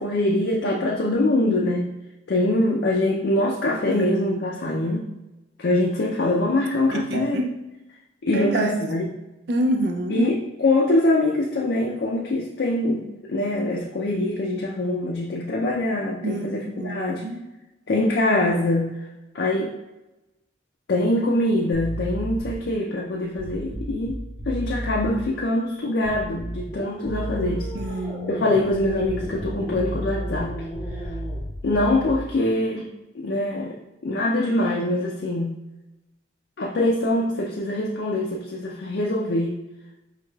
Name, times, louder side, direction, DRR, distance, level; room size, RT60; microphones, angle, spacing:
voice 1, 0.0-1.9 2.3-5.0 5.6-7.4 8.2-9.0 10.1-17.2 17.9-18.9 19.3-19.7 20.9-24.2 24.5-27.7 28.3-30.6 30.9-31.1 31.6-32.9 33.1-33.8 34.0-35.6 36.6-39.6, left 1 dB, 60° left, -1 dB, 0.4 m, -23 dB
voice 2, 3.9-4.5 6.9-7.6 8.3-8.8 9.5-10.3 16.2-17.4 27.7-28.5, right 1 dB, 55° right, 2 dB, 0.4 m, -27 dB
sound 1, 21.7-22.7 23.3-25.3 26.0-26.8 27.0-28.0 28.7-32.3, equal, 35° right, 1.0 m, -33 dB
sound 2, 26.7-31.5, equal, 25° left, 0.7 m, -36 dB
4.8 x 3.1 x 2.3 m, 0.99 s
head